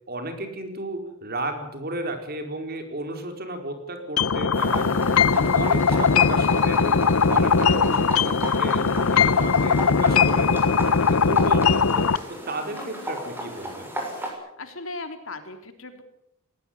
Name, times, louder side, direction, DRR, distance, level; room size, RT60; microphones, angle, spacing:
voice 1, 0.1-4.9 5.3-13.9, right 1 dB, 45° right, 6 dB, 4.6 m, -33 dB
sound 1, 4.2-12.2, left 5 dB, 80° left, 0.9 m, -20 dB
sound 2, 4.5-11.5, left 2 dB, 35° left, 3.5 m, -44 dB
sound 3, 4.5-14.3, equal, 10° right, 6.6 m, -35 dB
voice 2, 12.7-13.2 14.3-16.0, left 2 dB, 65° left, 7 dB, 3.5 m, -39 dB
20.0 x 19.5 x 9.6 m, 0.80 s
head